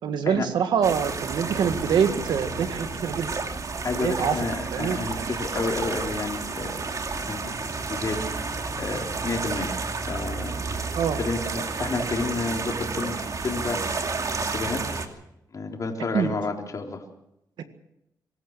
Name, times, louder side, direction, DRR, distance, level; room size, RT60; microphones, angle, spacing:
voice 1, 0.0-3.4 4.0-5.4 10.9-11.2 16.1-16.3, right 7 dB, 90° right, 8 dB, 1.8 m, -25 dB
sound 1, 0.8-15.1, right 4 dB, 50° right, 2.6 m, -31 dB
voice 2, 3.8-6.7 7.2-8.3 8.8-10.5 11.2-15.0 15.5-17.0, left 3 dB, 50° left, 1 dB, 3.7 m, -31 dB
24.5 x 14.5 x 7.5 m, 0.82 s
cardioid pair, 75°, 7 cm